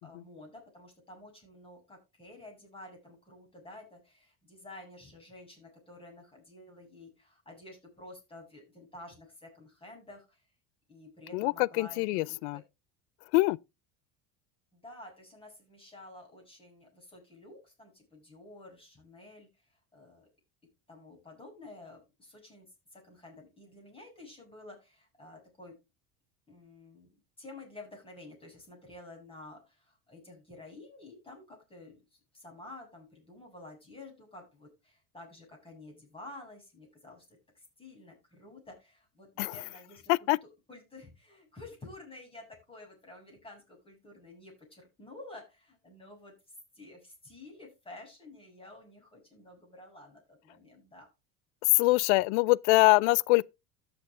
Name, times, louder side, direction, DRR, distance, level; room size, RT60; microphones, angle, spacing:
voice 1, 0.0-10.4 10.9-12.6 14.7-19.5 19.9-20.3 20.9-25.7 26.5-27.1 27.4-40.3 40.7-46.3 46.7-51.1, left 2 dB, 15° left, 7.7 m, -51 dB
voice 2, 11.3-12.6 13.3-13.6 39.4-39.5 40.1-40.4 51.7-53.5, left 22 dB, 90° left, 0.5 m, -24 dB
14.0 x 7.0 x 3.7 m
supercardioid pair, 115°, 34 cm